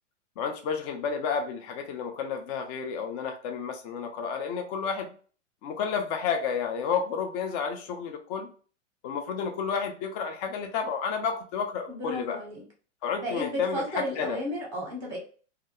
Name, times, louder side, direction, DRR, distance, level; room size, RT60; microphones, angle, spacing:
voice 1, 0.4-5.1 5.6-8.5 9.0-12.4 13.0-14.4, left 6 dB, 35° left, 4 dB, 0.4 m, -31 dB
voice 2, 11.9-12.6 13.2-15.2, equal, 10° right, -2 dB, 0.7 m, -33 dB
2.4 x 2.1 x 2.8 m, 0.41 s
hypercardioid pair, 105°, 37 cm